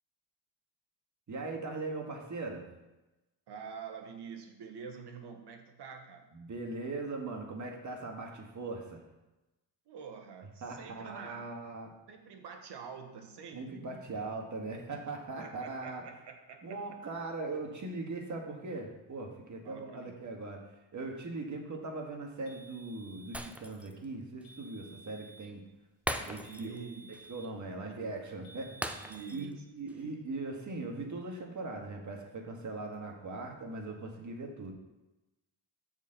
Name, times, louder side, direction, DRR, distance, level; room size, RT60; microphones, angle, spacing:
voice 1, 1.3-2.7 6.3-9.0 10.6-11.9 13.5-16.0 16.6-25.6 26.3-26.8 27.3-34.7, right 3 dB, 40° right, 2 dB, 1.8 m, -40 dB
voice 2, 3.5-6.2 9.9-11.5 12.1-13.8 15.4-16.6 19.6-20.1 26.4-27.2 27.8-28.2 29.0-29.6 29.9-30.2, right 6 dB, 60° right, 4 dB, 1.4 m, -47 dB
sound 1, 22.5-23.6 24.4-25.6 26.4-27.6 28.4-29.5, right 3 dB, 85° left, 1.9 m, -55 dB
Shatter, 23.3-24.0 24.4-24.5 26.1-26.8 27.1-27.3 28.8-29.5 29.9-30.0, right 1 dB, 5° right, 0.5 m, -39 dB
7.0 x 4.4 x 6.8 m, 1.0 s
cardioid pair, 95°, 46 cm